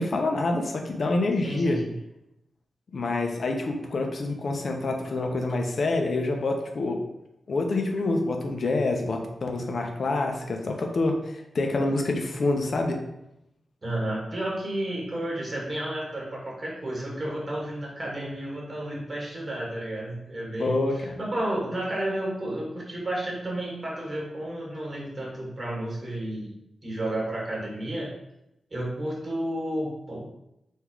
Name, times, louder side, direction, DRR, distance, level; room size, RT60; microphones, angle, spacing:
voice 1, 0.0-1.8 2.9-7.0 7.5-13.0 20.6-21.2, left 2 dB, 60° left, 3 dB, 0.7 m, -27 dB
voice 2, 1.4-1.9 13.8-26.5 26.8-28.1 28.7-30.2, right 1 dB, 35° right, -3 dB, 1.7 m, -32 dB
3.9 x 2.7 x 4.6 m, 0.85 s
cardioid pair, 75°, 0 cm